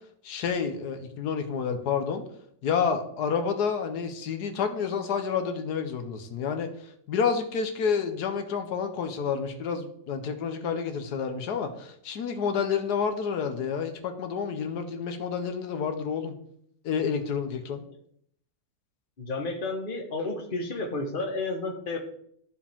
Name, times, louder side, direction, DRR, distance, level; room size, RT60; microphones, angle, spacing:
voice 1, 0.2-2.2 2.6-6.7 7.1-16.3 16.8-17.8, left 6 dB, 90° left, 7 dB, 1.5 m, -29 dB
voice 2, 19.2-22.0, left 2 dB, 35° left, 3 dB, 1.4 m, -31 dB
14.0 x 4.9 x 3.6 m, 0.68 s
omnidirectional pair, 1.7 m